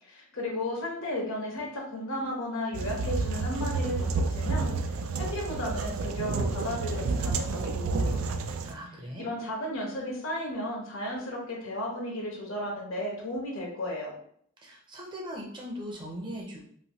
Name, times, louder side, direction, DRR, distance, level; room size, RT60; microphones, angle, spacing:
voice 1, 0.0-4.7 5.2-8.2 9.2-14.1, left 1 dB, 80° left, -2 dB, 1.1 m, -34 dB
sound 1, 2.7-8.7, right 3 dB, 75° right, 0.3 m, -30 dB
voice 2, 8.6-9.3 14.6-16.7, equal, 20° right, -1 dB, 0.6 m, -39 dB
3.0 x 2.6 x 2.8 m, 0.62 s
head